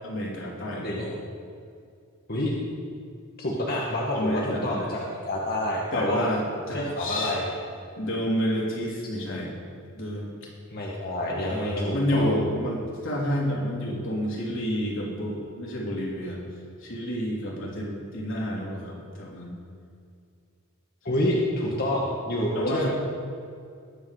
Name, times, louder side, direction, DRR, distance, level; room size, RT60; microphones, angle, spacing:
voice 1, 0.0-1.2 4.1-4.9 5.9-7.4 8.0-9.5 9.9-10.3 11.5-16.4 16.8-19.5 22.5-22.9, equal, 65° left, -3 dB, 3.7 m, -29 dB
voice 2, 3.4-6.3 6.7-7.5 10.7-12.4 21.0-22.9, left 1 dB, 50° left, -3 dB, 1.9 m, -28 dB
21.0 x 9.2 x 5.1 m, 2.3 s
head